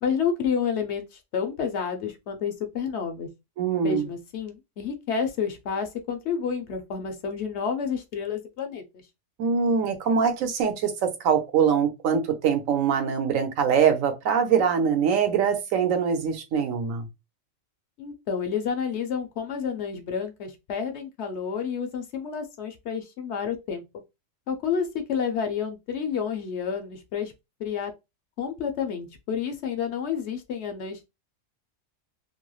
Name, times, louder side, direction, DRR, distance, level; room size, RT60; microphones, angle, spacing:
voice 1, 0.0-3.3 3.8-8.8 18.0-23.8 24.5-27.3 27.6-27.9 28.4-31.0, left 6 dB, 65° left, 0.9 m, -30 dB
voice 2, 3.6-4.1 9.4-17.0, right 7 dB, 85° right, 1.1 m, -23 dB
3.1 x 2.7 x 2.3 m
omnidirectional pair, 1.4 m